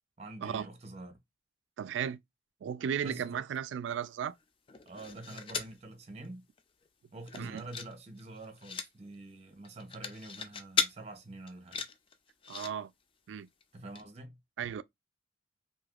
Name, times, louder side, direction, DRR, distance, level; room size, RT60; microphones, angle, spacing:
voice 1, 0.2-1.2 3.0-3.4 4.9-6.4 7.1-11.8 13.7-14.4, right 2 dB, 35° right, 0.7 m, -46 dB
voice 2, 1.8-2.2 2.6-4.3 7.3-7.6 12.5-12.9 13.3-13.5 14.6-14.8, right 8 dB, 85° right, 0.3 m, -35 dB
sound 1, 4.7-5.8 6.2-6.3 6.6-6.9 7.2-8.9 9.6-10.9 11.5-12.7 13.6-13.7 14.0-14.1, left 6 dB, 30° left, 0.3 m, -36 dB
3.2 x 2.7 x 2.4 m
head